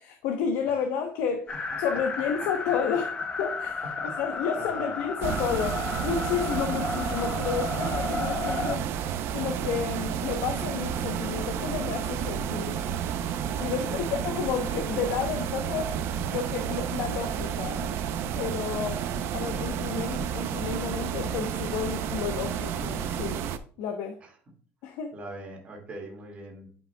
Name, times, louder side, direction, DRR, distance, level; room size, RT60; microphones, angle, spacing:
voice 1, 0.0-8.9 9.3-12.8 13.6-16.0 16.3-17.8 18.3-19.0 19.3-23.4 23.8-24.2 24.8-25.1, left 7 dB, 80° left, 0.9 m, -31 dB
sound 1, 1.5-8.8, left 4 dB, 20° left, 0.8 m, -33 dB
voice 2, 4.6-4.9 13.9-14.1 25.1-26.8, right 2 dB, 25° right, 2.0 m, -41 dB
sound 2, 5.2-23.6, right 8 dB, 55° right, 0.6 m, -31 dB
9.8 x 5.5 x 2.2 m
cardioid pair, 165°, 5 cm